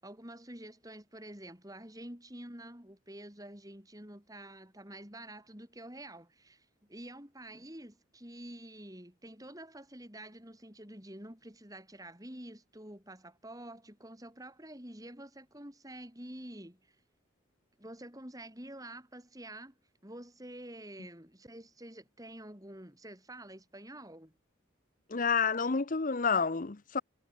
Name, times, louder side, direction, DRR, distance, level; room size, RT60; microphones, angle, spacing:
voice 1, 0.0-16.9 17.8-19.8 20.0-24.3, right 1 dB, 20° right, 5.6 m, -48 dB
voice 2, 25.1-27.0, left 5 dB, 40° left, 0.8 m, -29 dB
head